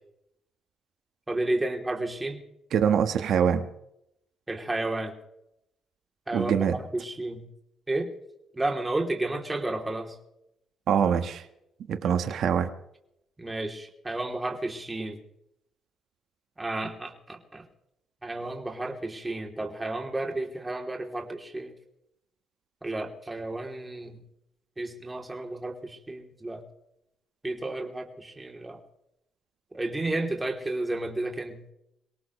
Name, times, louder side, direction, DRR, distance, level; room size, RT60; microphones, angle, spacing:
voice 1, 1.3-2.4 4.5-5.1 6.3-6.5 6.9-7.4 7.9-8.1 8.6-10.1 13.4-15.2 16.6-17.6 18.2-21.7 22.8-24.2 24.8-26.6 27.4-28.8 29.7-31.6, right 2 dB, 15° right, 2 dB, 3.1 m, -32 dB
voice 2, 2.7-3.7 6.3-6.8 10.9-11.4 11.9-12.7, right 8 dB, 70° right, 8 dB, 1.4 m, -24 dB
24.0 x 18.0 x 3.2 m, 0.80 s
cardioid pair, 90°, 0 cm